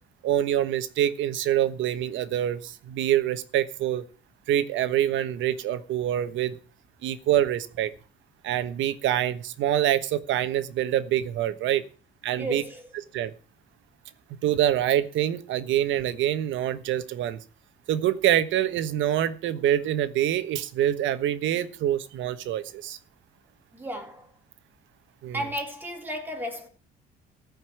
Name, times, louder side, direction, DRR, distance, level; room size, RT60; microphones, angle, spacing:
voice 1, 0.2-4.0 4.5-6.6 7.0-7.9 8.4-11.8 12.2-12.6 13.1-13.3 14.4-17.4 17.9-23.0 25.2-25.4, right 11 dB, 75° right, 1.3 m, -25 dB
voice 2, 12.4-12.9 23.7-24.3 25.3-26.7, equal, 10° right, 3.5 m, -34 dB
14.5 x 5.5 x 9.2 m
cardioid pair, 115°, 20 cm